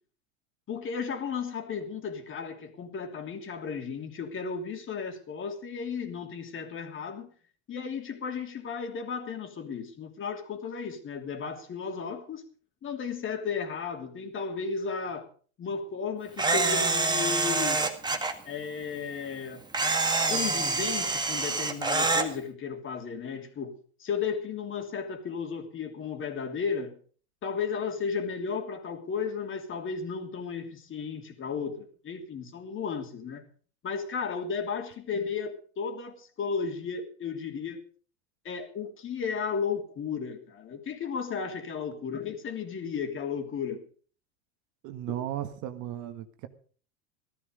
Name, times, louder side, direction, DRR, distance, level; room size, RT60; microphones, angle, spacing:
voice 1, 0.7-7.3 7.7-12.4 12.8-15.3 15.6-18.0 18.4-19.6 20.3-27.0 27.4-33.4 33.8-37.8 38.4-43.8, left 6 dB, 30° left, 2.9 m, -34 dB
Camera, 16.4-18.3 19.7-22.3, right 3 dB, 10° right, 1.9 m, -26 dB
voice 2, 44.8-46.5, right 12 dB, 45° right, 1.8 m, -35 dB
15.5 x 13.0 x 5.2 m
supercardioid pair, 120°, 40 cm